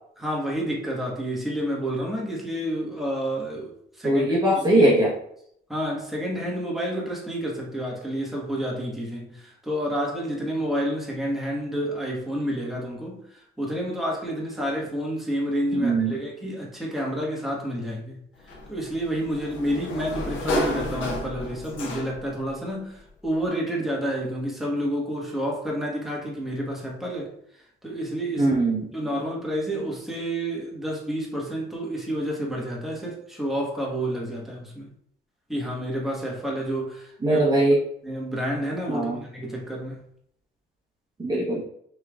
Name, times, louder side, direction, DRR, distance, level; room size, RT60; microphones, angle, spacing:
voice 1, 0.2-4.8 5.7-27.3 27.8-28.5 28.9-34.9 35.5-37.4 38.0-40.0, equal, ahead, -2 dB, 1.4 m, -29 dB
voice 2, 4.0-5.2 15.7-16.2 28.4-28.9 37.2-37.8 38.9-39.2 41.2-41.6, right 1 dB, 20° right, -5 dB, 1.1 m, -21 dB
Sliding door, 18.5-22.4, left 1 dB, 90° left, 1.3 m, -31 dB
5.6 x 3.3 x 2.4 m, 0.71 s
cardioid pair, 90°, 20 cm